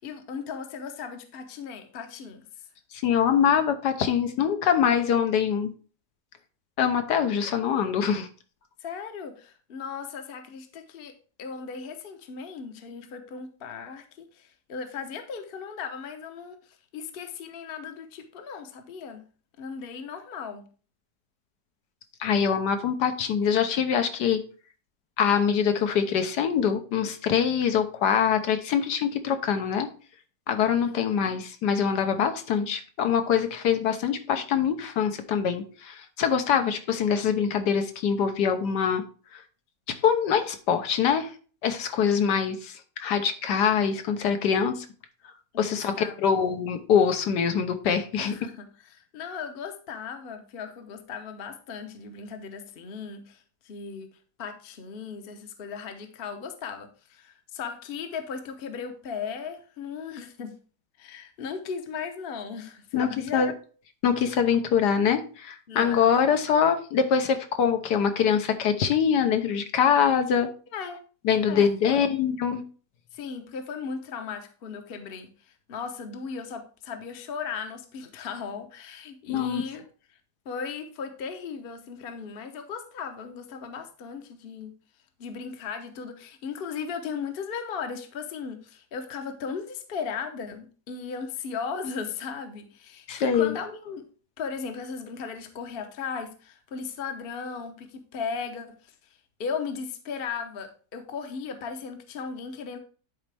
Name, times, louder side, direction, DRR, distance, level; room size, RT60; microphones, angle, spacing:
voice 1, 0.0-2.4 8.8-11.1 11.4-19.2 19.6-20.7 30.8-31.4 45.5-46.3 48.2-54.1 54.4-60.5 61.0-63.5 65.7-66.1 70.7-71.0 71.5-72.1 73.1-80.2 80.4-84.7 85.2-94.0 94.4-102.8, left 6 dB, 45° left, 7 dB, 0.9 m, -37 dB
voice 2, 2.9-5.7 6.8-8.3 22.2-24.4 25.2-29.9 30.5-39.0 39.3-39.4 40.0-41.3 41.6-42.7 43.0-44.9 45.6-45.9 46.2-48.4 62.9-63.5 64.0-70.5 71.2-72.6 79.3-79.6 93.1-93.6, left 7 dB, 75° left, 7 dB, 1.4 m, -24 dB
10.0 x 4.2 x 3.3 m, 0.39 s
omnidirectional pair, 1.8 m